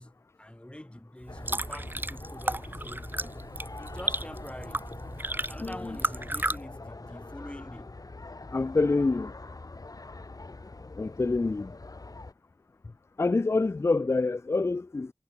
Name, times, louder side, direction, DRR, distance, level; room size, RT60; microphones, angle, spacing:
voice 1, 0.0-3.3 3.8-4.9 5.5-8.0, left 1 dB, 15° left, 3.9 m, -45 dB
sound 1, 1.2-6.6, right 2 dB, 30° right, 0.8 m, -34 dB
sound 2, 1.3-12.3, left 3 dB, 60° left, 2.3 m, -44 dB
voice 2, 5.6-6.0 8.5-9.3 11.0-11.7 13.2-15.1, left 3 dB, 40° left, 0.4 m, -26 dB
wide cardioid pair, 45°, 7 cm